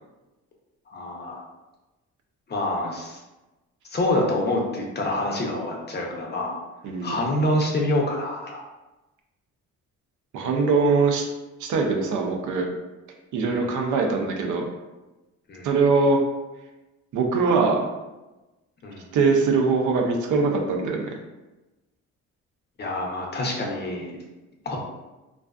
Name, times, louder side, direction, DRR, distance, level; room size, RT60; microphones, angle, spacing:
voice 1, 0.9-1.4 2.5-3.2 3.9-6.6 7.0-8.6 13.5-13.7 15.5-15.7 18.8-19.0 22.8-24.2 24.7-24.8, left 1 dB, 35° left, -1 dB, 0.6 m, -26 dB
voice 2, 6.8-7.1 10.3-11.3 11.6-12.7 13.3-14.7 15.6-16.2 17.1-17.9 19.1-21.1, right 4 dB, 75° right, 2 dB, 0.5 m, -22 dB
2.4 x 2.4 x 2.2 m, 1.1 s
cardioid pair, 90°, 30 cm